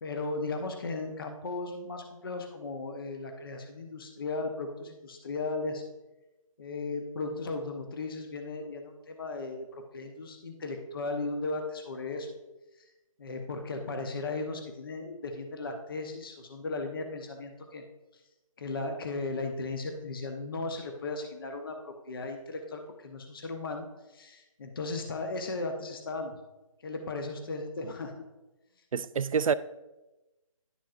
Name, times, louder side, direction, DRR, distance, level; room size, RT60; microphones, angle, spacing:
voice 1, 0.0-5.8 6.6-12.3 12.8-12.9 13.2-17.8 18.6-26.4 26.8-28.1, left 3 dB, 40° left, 0.8 m, -36 dB
voice 2, 28.9-29.5, right 6 dB, 70° right, 0.4 m, -27 dB
10.5 x 7.1 x 2.5 m
hypercardioid pair, 165°, 18 cm